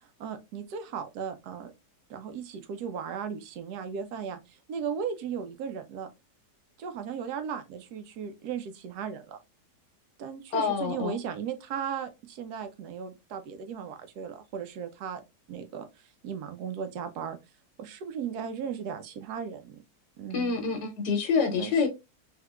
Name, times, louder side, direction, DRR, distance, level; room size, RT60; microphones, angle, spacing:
voice 1, 0.2-1.7 2.1-6.1 6.8-9.4 10.2-15.2 15.5-15.9 16.2-17.4 17.8-19.8 20.2-20.8 21.5-21.7, right 7 dB, 75° right, 1.1 m, -36 dB
voice 2, 10.5-11.2 20.3-21.9, left 5 dB, 80° left, 1.3 m, -27 dB
3.5 x 2.7 x 2.2 m
omnidirectional pair, 1.9 m